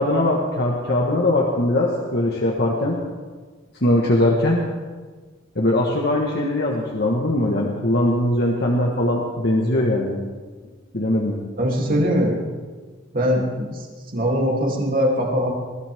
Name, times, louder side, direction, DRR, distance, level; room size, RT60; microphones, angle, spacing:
voice 1, 0.0-3.0 3.8-4.7 5.5-10.2 10.9-11.4, left 1 dB, 55° left, -2 dB, 1.6 m, -21 dB
voice 2, 11.6-12.4 13.1-13.9 14.1-15.5, equal, 45° right, -1 dB, 3.2 m, -21 dB
21.0 x 14.5 x 3.7 m, 1.4 s
head